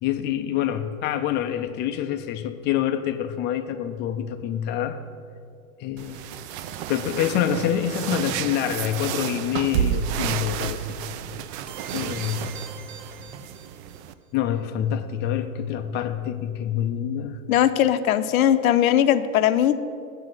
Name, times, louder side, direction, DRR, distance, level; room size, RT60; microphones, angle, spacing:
voice 1, 0.0-5.0 5.8-6.2 6.9-11.0 11.9-12.6 14.3-17.4, left 10 dB, 25° left, 9 dB, 0.4 m, -26 dB
sound 1, 6.0-14.1, right 9 dB, 50° right, 0.5 m, -31 dB
sound 2, 11.7-14.0, right 6 dB, 35° right, 1.1 m, -43 dB
voice 2, 17.5-19.8, left 11 dB, 75° left, 12 dB, 0.7 m, -19 dB
7.8 x 5.1 x 7.3 m, 2.3 s
hypercardioid pair, 105°, 43 cm